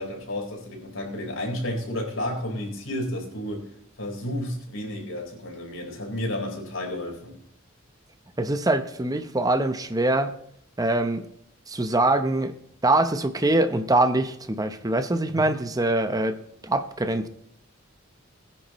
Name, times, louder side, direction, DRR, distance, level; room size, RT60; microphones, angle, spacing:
voice 1, 0.0-3.7 4.0-7.4 15.4-15.5, left 1 dB, 85° left, 4.4 m, -31 dB
voice 2, 8.4-10.3 10.8-11.3 11.7-12.5 12.8-16.4 16.6-17.3, right 2 dB, 20° right, 0.8 m, -23 dB
21.0 x 10.0 x 3.1 m
head